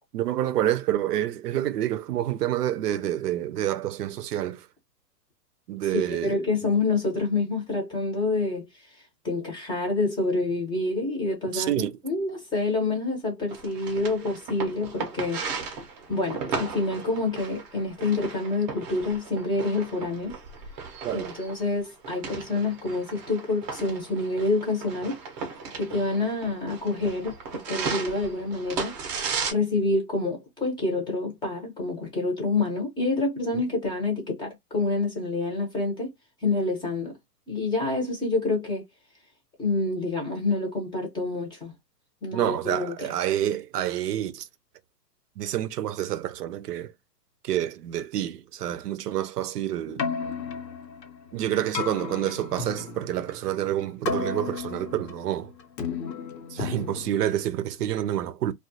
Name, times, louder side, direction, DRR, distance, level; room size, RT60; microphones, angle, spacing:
voice 1, 0.1-4.6 5.7-6.3 11.5-11.9 21.0-21.3 42.3-44.4 45.4-46.9 47.4-50.0 51.3-55.5 56.5-58.5, right 12 dB, 70° right, 0.6 m, -28 dB
voice 2, 5.8-8.9 9.2-15.5 16.1-20.3 21.1-25.2 25.8-28.9 29.5-36.1 36.4-37.1 37.5-38.8 39.6-41.7 42.2-43.2, left 3 dB, 10° left, 0.7 m, -27 dB
sound 1, 13.5-29.5, right 5 dB, 30° right, 0.6 m, -36 dB
Keyboard (musical), 49.8-58.0, left 5 dB, 80° left, 1.0 m, -34 dB
2.4 x 2.3 x 2.6 m
hypercardioid pair, 135°, 49 cm